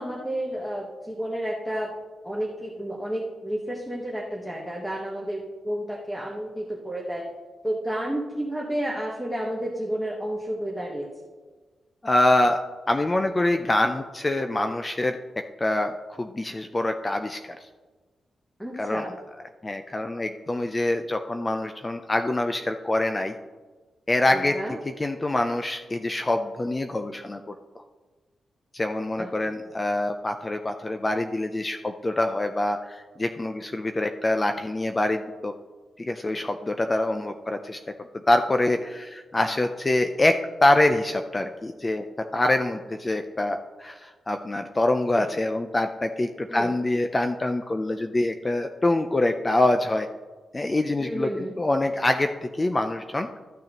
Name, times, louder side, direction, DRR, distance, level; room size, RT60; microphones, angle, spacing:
voice 1, 0.0-1.9 2.2-7.3 7.6-11.1 18.6-19.2 24.3-24.8 29.2-29.3 45.2-45.3 46.5-46.7 51.0-51.5, right 1 dB, ahead, -2 dB, 1.2 m, -31 dB
voice 2, 12.0-12.6 12.9-15.2 15.6-17.4 18.8-19.0 19.6-23.3 24.1-24.5 24.8-27.5 28.7-35.5 36.0-37.8 38.3-42.0 42.3-50.1 50.5-53.3, left 1 dB, 20° left, 6 dB, 0.4 m, -25 dB
13.5 x 6.5 x 2.9 m, 1.3 s
wide cardioid pair, 110°, 0 cm